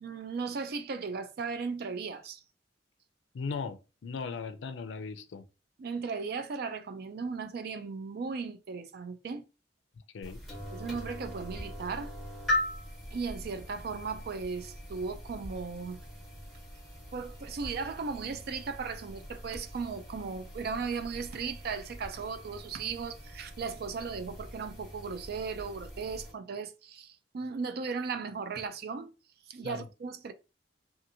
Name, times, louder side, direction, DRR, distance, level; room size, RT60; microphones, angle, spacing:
voice 1, 0.0-2.4 5.8-9.4 10.7-12.1 13.1-16.0 17.1-29.1 29.5-30.3, right 5 dB, 60° right, 0.4 m, -36 dB
voice 2, 3.3-5.5 10.1-10.4 29.6-29.9, left 5 dB, 85° left, 0.4 m, -38 dB
sound 1, 10.2-26.3, left 1 dB, ahead, 1.0 m, -41 dB
2.8 x 2.5 x 2.6 m
head